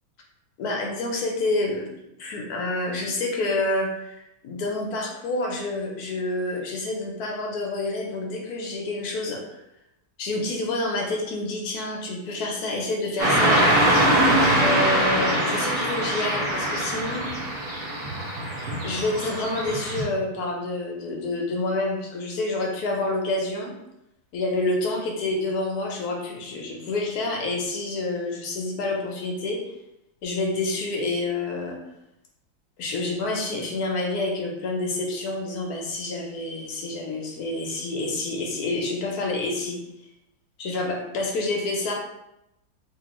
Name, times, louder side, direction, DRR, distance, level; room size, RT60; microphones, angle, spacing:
voice 1, 0.6-1.9 2.2-9.6 10.2-13.7 14.6-17.3 18.8-23.7 24.3-29.6 30.2-31.8 32.8-39.8 40.6-41.9, left 2 dB, 65° left, 0 dB, 1.0 m, -28 dB
Car passing by / Traffic noise roadway noise, 13.2-20.0, right 1 dB, 45° right, 1.2 m, -22 dB
3.6 x 3.1 x 2.9 m, 0.86 s
omnidirectional pair, 2.1 m